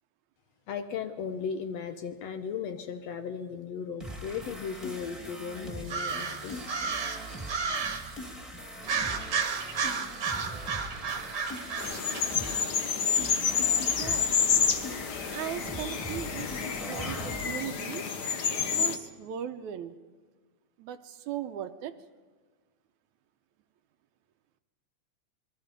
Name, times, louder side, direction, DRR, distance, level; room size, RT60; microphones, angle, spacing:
voice 1, 0.7-6.7, left 6 dB, 65° left, 8 dB, 1.9 m, -36 dB
sound 1, 4.0-17.6, equal, ahead, 1.7 m, -41 dB
sound 2, 5.8-8.1 8.8-12.9, right 5 dB, 40° right, 1.7 m, -33 dB
sound 3, 11.8-19.0, left 6 dB, 90° left, 0.9 m, -29 dB
voice 2, 13.8-14.3 15.3-18.1 18.5-20.0 20.8-21.9, right 10 dB, 75° right, 9 dB, 2.1 m, -38 dB
27.0 x 22.0 x 5.2 m, 1.5 s
omnidirectional pair, 3.6 m